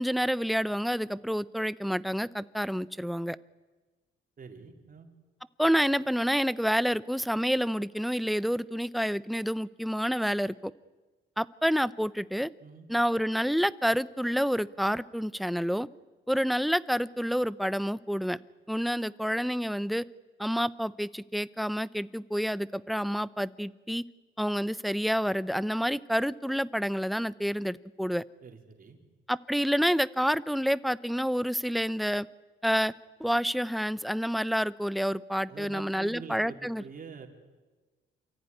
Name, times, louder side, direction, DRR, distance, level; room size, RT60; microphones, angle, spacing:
voice 1, 0.0-3.4 5.6-10.7 11.4-12.5 12.9-15.9 16.3-18.4 18.7-20.0 20.4-24.0 24.4-28.2 29.3-32.3 32.6-32.9 33.2-36.8, equal, ahead, 17 dB, 0.7 m, -28 dB
voice 2, 4.4-5.1 12.6-12.9 28.4-29.0 35.5-37.3, right 5 dB, 45° right, 3 dB, 3.8 m, -45 dB
28.0 x 14.5 x 10.0 m, 1.2 s
cardioid pair, 90°, 20 cm